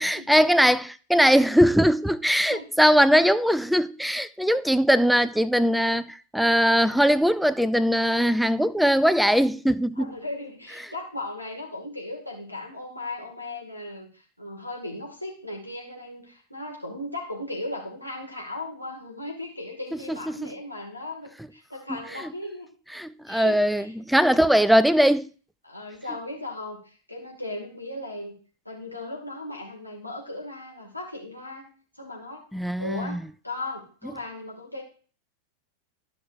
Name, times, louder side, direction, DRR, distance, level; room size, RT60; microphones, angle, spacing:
voice 1, 0.0-10.1 20.3-20.5 22.2-22.3 23.0-25.3 32.5-33.2, equal, ahead, 0.3 m, -21 dB
voice 2, 10.0-22.7 23.3-23.9 24.2-24.5 25.6-28.3 28.6-31.7 32.0-32.5 32.8-34.8, left 2 dB, 90° left, 2.3 m, -37 dB
13.0 x 6.0 x 2.7 m
figure-of-eight pair, 90°, 0 cm